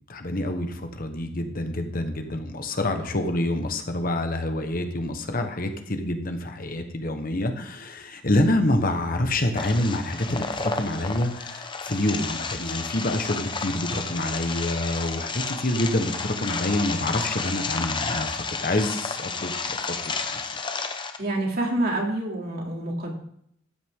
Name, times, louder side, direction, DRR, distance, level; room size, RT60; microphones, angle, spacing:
voice 1, 0.1-19.8 20.3-20.4, left 1 dB, 45° left, 6 dB, 1.3 m, -27 dB
sound 1, 9.6-21.2, left 4 dB, 25° left, 0.9 m, -31 dB
voice 2, 21.2-23.2, right 1 dB, 55° right, -1 dB, 2.9 m, -27 dB
13.0 x 9.4 x 3.8 m, 0.69 s
head